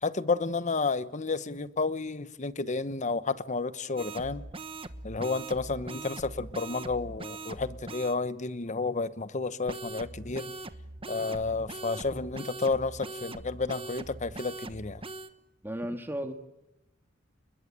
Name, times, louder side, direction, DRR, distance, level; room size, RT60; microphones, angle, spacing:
voice 1, 0.0-4.4 5.0-10.5 11.1-15.0, left 3 dB, 35° left, 1.0 m, -31 dB
sound 1, 4.0-8.2 9.7-15.3, right 2 dB, 30° right, 1.2 m, -41 dB
voice 2, 15.6-16.3, equal, 10° right, 1.8 m, -34 dB
29.0 x 21.0 x 8.8 m
head